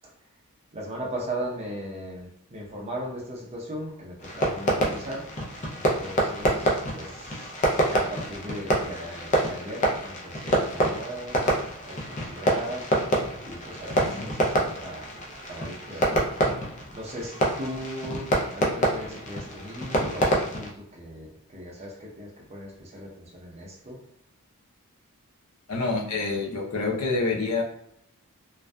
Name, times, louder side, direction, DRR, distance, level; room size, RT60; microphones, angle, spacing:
voice 1, 0.7-5.2 5.7-7.5 7.9-11.4 11.9-15.2 15.5-16.1 16.9-24.0, equal, 30° right, -2 dB, 0.6 m, -38 dB
Fireworks, 4.2-20.7, right 1 dB, 30° left, 0.5 m, -27 dB
voice 2, 25.7-27.6, left 3 dB, 80° left, -2 dB, 0.6 m, -27 dB
2.5 x 2.2 x 2.2 m, 0.74 s
head